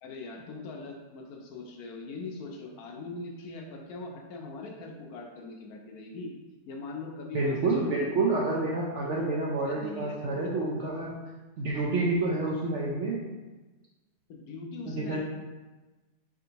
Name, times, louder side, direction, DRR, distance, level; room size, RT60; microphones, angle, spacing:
voice 1, 0.0-6.3 6.7-8.0 9.0-9.1 9.7-10.9 14.3-15.2, left 3 dB, 70° left, 1 dB, 1.1 m, -41 dB
voice 2, 7.3-11.1 11.6-13.2 14.9-15.2, right 2 dB, 65° right, -4 dB, 0.7 m, -28 dB
4.1 x 3.5 x 2.8 m, 1.2 s
omnidirectional pair, 1.7 m